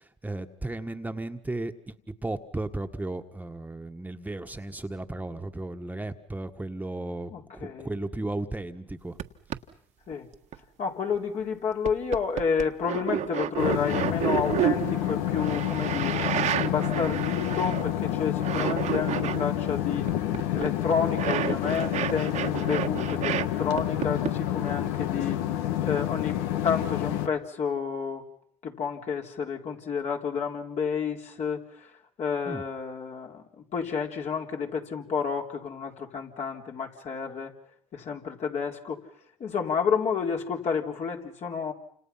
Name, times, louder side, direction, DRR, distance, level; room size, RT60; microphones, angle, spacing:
voice 1, 0.0-2.0 2.2-9.2 32.5-32.6, right 2 dB, 10° right, 6 dB, 1.6 m, -35 dB
voice 2, 7.3-7.9 10.1-10.3 10.8-20.1 20.5-28.2 28.6-31.9 32.2-37.5 37.9-39.1 39.4-41.7, left 6 dB, 55° left, 1 dB, 3.9 m, -30 dB
sound 1, 9.2-9.3 9.5-9.6 10.1-10.6 11.1-11.2 11.9-18.1 18.4-19.5 20.1-23.5 23.8-24.3, right 10 dB, 60° right, 1.5 m, -30 dB
sound 2, 13.6-27.3, left 12 dB, 90° left, 1.4 m, -29 dB
29.0 x 27.5 x 5.8 m, 0.63 s
supercardioid pair, 80°, 14 cm